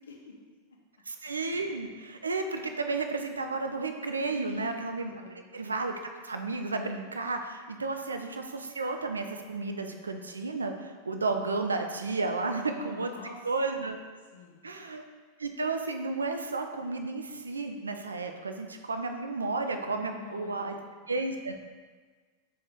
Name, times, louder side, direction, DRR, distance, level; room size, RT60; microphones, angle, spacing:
voice 1, 1.1-5.9 6.2-13.1 13.4-14.0 14.6-15.0 15.4-20.7 21.1-21.5, right 3 dB, 75° right, 5 dB, 0.3 m, -32 dB
voice 2, 4.2-4.7 5.1-5.4 12.3-13.4 14.3-14.7 19.8-20.9, left 2 dB, 70° left, 0 dB, 0.7 m, -45 dB
4.6 x 3.0 x 3.6 m, 1.5 s
figure-of-eight pair, 90°, 0 cm